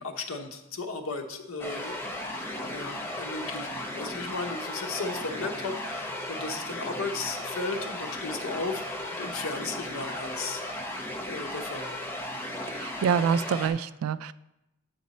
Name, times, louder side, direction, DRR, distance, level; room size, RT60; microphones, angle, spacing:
voice 1, 0.0-10.9 11.3-12.0, left 3 dB, 80° left, 5 dB, 0.8 m, -36 dB
sound 1, 1.6-13.7, left 1 dB, 10° left, 0.7 m, -36 dB
voice 2, 12.7-14.3, right 7 dB, 90° right, 16 dB, 0.3 m, -26 dB
7.8 x 5.1 x 4.1 m, 0.91 s
head